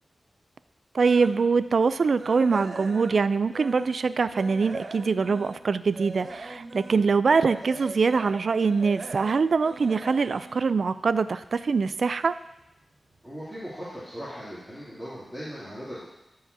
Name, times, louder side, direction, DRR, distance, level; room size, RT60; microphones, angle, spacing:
voice 1, 0.9-12.3, right 4 dB, 65° right, 14 dB, 0.3 m, -23 dB
sound 1, 1.0-1.4 1.8-4.0 4.3-11.5 11.9-12.2 12.6-12.7 13.1-13.2, right 2 dB, 50° right, 0.7 m, -41 dB
voice 2, 13.2-16.0, equal, ahead, -13 dB, 2.8 m, -38 dB
13.0 x 4.8 x 2.8 m, 0.90 s
cardioid pair, 65°, 0 cm